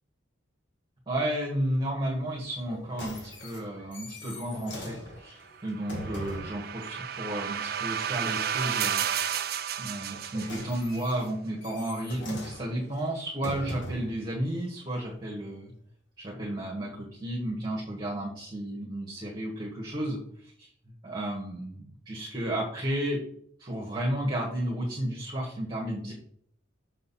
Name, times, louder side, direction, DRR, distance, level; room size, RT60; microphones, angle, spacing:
voice 1, 1.1-9.1 9.8-15.7 16.2-20.7 21.0-23.2 23.6-26.1, right 1 dB, 20° right, -3 dB, 1.6 m, -32 dB
sound 1, 2.6-6.6 10.0-14.2 14.9-15.0, equal, 65° left, 1.9 m, -41 dB
sound 2, 5.7-11.0, right 9 dB, 50° right, 0.6 m, -32 dB
6.6 x 6.5 x 4.2 m, 0.65 s
head